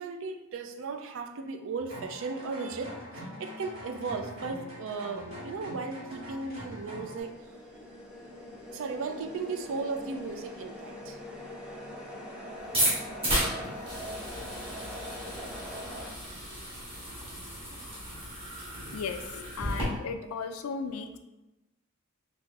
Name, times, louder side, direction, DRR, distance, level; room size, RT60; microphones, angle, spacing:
voice 1, 0.0-7.3 8.7-11.2, right 4 dB, 65° right, 6 dB, 0.4 m, -36 dB
sound 1, 1.8-7.2, equal, 85° right, 1.5 m, -44 dB
sound 2, 4.8-16.1, left 1 dB, 5° right, 0.5 m, -43 dB
sound 3, 12.6-19.8, right 1 dB, 25° right, 1.3 m, -33 dB
voice 2, 18.9-21.2, left 5 dB, 75° left, 8 dB, 0.3 m, -36 dB
4.7 x 2.6 x 2.4 m, 1.0 s
head